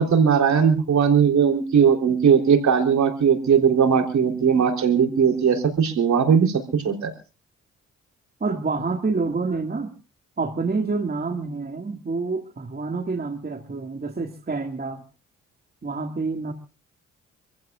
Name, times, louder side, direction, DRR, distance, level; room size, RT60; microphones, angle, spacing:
voice 1, 0.0-7.1, right 7 dB, 65° right, 4 dB, 3.6 m, -19 dB
voice 2, 8.4-9.9 10.4-15.0 15.8-16.5, right 4 dB, 30° right, 4 dB, 2.0 m, -27 dB
26.5 x 15.5 x 2.4 m, 0.33 s
supercardioid pair, 50°, 31 cm